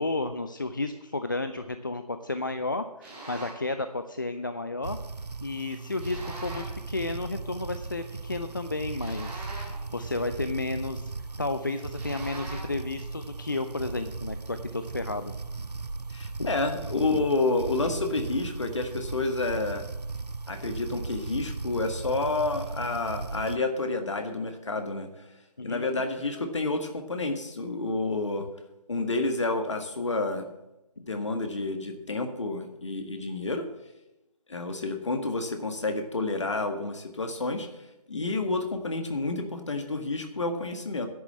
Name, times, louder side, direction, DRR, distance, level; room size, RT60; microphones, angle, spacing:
voice 1, 0.0-5.0 5.4-15.3 25.6-25.9, left 2 dB, 30° left, 9 dB, 0.4 m, -32 dB
sound 1, 3.0-3.7 6.0-6.9 9.0-10.0 12.0-12.8, right 2 dB, 5° right, 1.7 m, -42 dB
sound 2, 4.8-23.6, right 3 dB, 85° right, 0.6 m, -37 dB
voice 2, 16.1-19.8 20.5-25.2 25.6-28.5 28.9-30.5 31.0-33.6 34.5-37.7 38.1-41.1, left 3 dB, 50° left, 6 dB, 1.7 m, -29 dB
10.5 x 7.1 x 8.7 m, 0.93 s
figure-of-eight pair, 155°, 20 cm